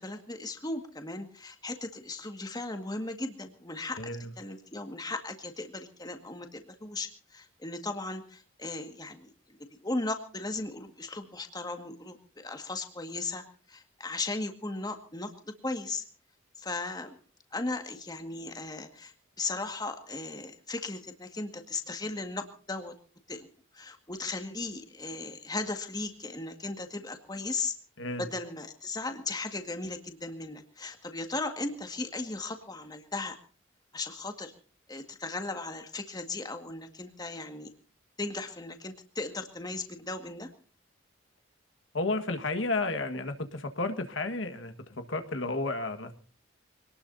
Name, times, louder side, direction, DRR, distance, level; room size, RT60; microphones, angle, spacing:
voice 1, 0.0-4.1 4.4-9.3 9.7-16.0 16.6-17.2 17.5-22.9 23.3-23.5 23.7-27.7 28.2-33.4 33.9-34.5 34.9-37.7 38.2-40.5, left 2 dB, 20° left, 6 dB, 1.8 m, -37 dB
voice 2, 4.0-4.3 28.0-28.3 41.9-46.1, left 2 dB, 70° left, 7 dB, 1.6 m, -32 dB
25.0 x 19.0 x 2.7 m, 0.40 s
head